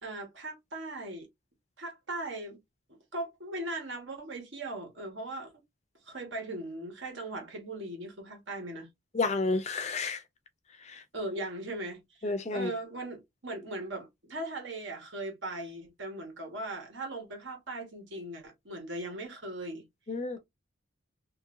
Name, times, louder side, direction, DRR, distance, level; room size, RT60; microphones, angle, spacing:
voice 1, 0.0-1.3 1.8-2.6 2.9-5.5 6.0-8.9 11.1-19.8, right 2 dB, 60° right, 1.4 m, -39 dB
voice 2, 9.1-10.2 10.8-11.0 12.2-12.7 20.1-20.4, left 3 dB, 30° left, 0.5 m, -30 dB
3.0 x 2.8 x 2.5 m
head